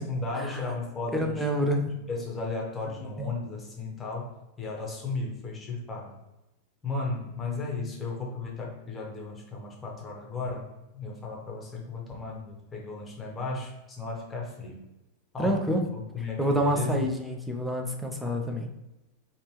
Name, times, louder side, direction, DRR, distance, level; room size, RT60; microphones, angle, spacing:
voice 1, 0.0-1.5 1.8-6.2 6.8-10.7 10.9-14.8 15.3-17.1, left 3 dB, 20° left, -1 dB, 0.9 m, -35 dB
voice 2, 1.1-1.9 3.2-3.3 15.4-15.8 16.4-18.7, equal, ahead, 1 dB, 0.5 m, -27 dB
3.3 x 2.5 x 2.9 m, 0.95 s
figure-of-eight pair, 90°, 0 cm